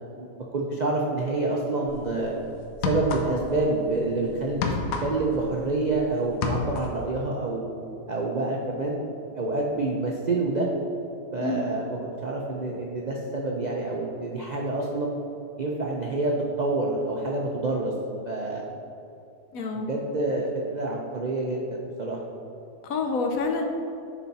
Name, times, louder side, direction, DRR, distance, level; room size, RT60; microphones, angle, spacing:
voice 1, 0.0-2.4 2.8-4.7 5.0-7.7 8.1-9.0 9.3-10.7 11.3-15.2 15.6-17.9 18.2-18.6 19.7-22.2, right 2 dB, 85° right, -1 dB, 0.4 m, -27 dB
sound 1, 1.9-2.1 2.7-3.6 3.9-6.0 6.3-7.0, left 4 dB, 85° left, 1.3 m, -29 dB
voice 2, 19.5-19.9 22.8-23.7, left 3 dB, 65° left, 3 dB, 1.1 m, -27 dB
10.5 x 4.1 x 4.1 m, 2.7 s
omnidirectional pair, 1.7 m